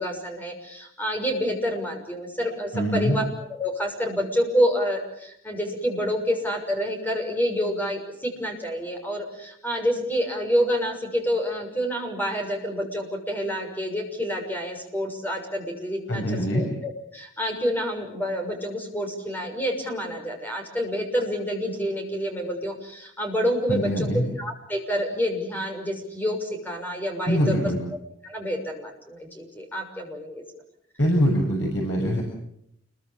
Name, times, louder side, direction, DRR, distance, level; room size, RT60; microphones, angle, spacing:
voice 1, 0.0-3.2 3.5-24.1 24.4-27.7 28.2-30.4, equal, 10° left, 3 dB, 6.6 m, -28 dB
voice 2, 2.7-3.1 16.1-16.6 23.7-24.2 27.3-27.8 31.0-32.2, equal, 65° left, 0 dB, 7.2 m, -23 dB
29.0 x 23.0 x 7.5 m, 0.74 s
head